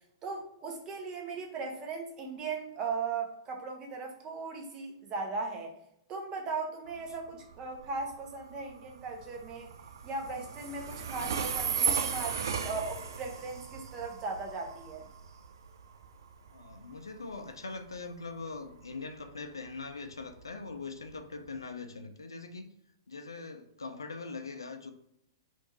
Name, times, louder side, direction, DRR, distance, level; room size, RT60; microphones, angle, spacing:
voice 1, 0.2-5.7 6.1-9.7 10.0-15.1, right 4 dB, 30° right, 0.8 m, -38 dB
Train, 6.9-21.6, right 6 dB, 65° right, 0.4 m, -37 dB
voice 2, 16.5-22.7 23.1-24.9, left 4 dB, 80° left, 0.4 m, -42 dB
3.7 x 2.6 x 2.8 m
figure-of-eight pair, 105°, 2 cm